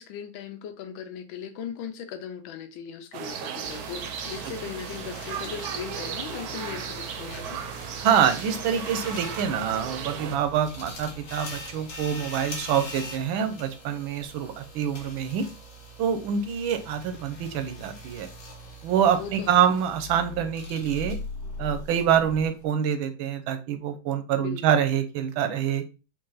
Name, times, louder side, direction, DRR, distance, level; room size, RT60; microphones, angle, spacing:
voice 1, 0.0-7.6 19.1-19.7 24.3-24.9, left 8 dB, 80° left, 7 dB, 1.5 m, -38 dB
sound 1, 3.1-10.4, right 7 dB, 70° right, 0.9 m, -36 dB
sound 2, 3.6-22.6, equal, 45° left, 1.4 m, -41 dB
voice 2, 8.0-15.5 16.0-18.3 18.8-21.2 21.6-25.8, right 8 dB, 90° right, 9 dB, 1.5 m, -26 dB
4.5 x 2.6 x 3.9 m, 0.31 s
omnidirectional pair, 2.1 m